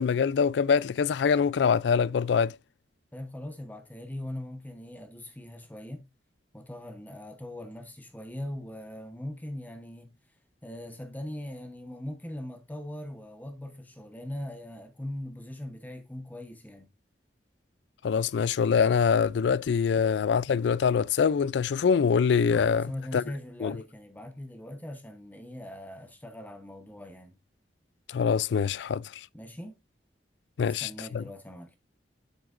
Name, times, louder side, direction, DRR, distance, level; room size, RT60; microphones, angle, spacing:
voice 1, 0.0-2.6 18.0-23.2 23.6-23.8 28.1-29.1 30.6-31.2, left 6 dB, 80° left, 0.4 m, -24 dB
voice 2, 3.1-6.1 6.5-10.1 10.6-16.9 22.7-27.4 29.3-29.8 30.6-31.7, left 1 dB, 10° left, 0.9 m, -40 dB
7.8 x 7.7 x 2.5 m
head